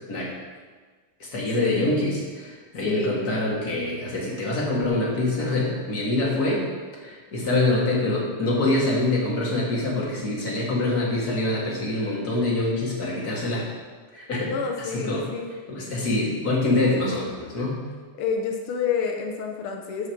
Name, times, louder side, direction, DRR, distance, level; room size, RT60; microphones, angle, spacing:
voice 1, 1.2-6.7 7.0-13.7 14.1-14.5 14.8-15.2 15.7-17.8, left 2 dB, 30° left, -4 dB, 2.3 m, -25 dB
voice 2, 2.8-3.2 14.4-15.6 18.2-20.1, left 5 dB, 90° left, 2 dB, 1.2 m, -28 dB
14.0 x 5.6 x 4.6 m, 1.5 s
omnidirectional pair, 3.6 m